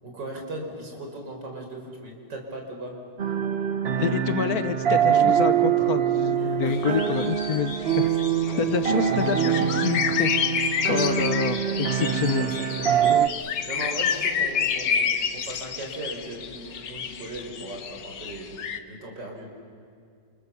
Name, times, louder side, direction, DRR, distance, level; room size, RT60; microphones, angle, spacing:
voice 1, 0.0-2.9 6.4-7.0 8.0-8.1 8.5-8.8 11.1-11.3 11.6-18.6 18.9-19.5, right 1 dB, 75° right, 1 dB, 5.2 m, -38 dB
sound 1, 3.2-13.3, right 9 dB, 45° right, 0.9 m, -24 dB
voice 2, 4.0-8.1 8.5-12.5, left 7 dB, 60° left, 11 dB, 1.4 m, -28 dB
sound 2, 6.7-18.8, left 7 dB, 75° left, 1.9 m, -29 dB
28.5 x 28.0 x 7.0 m, 2.4 s
omnidirectional pair, 1.9 m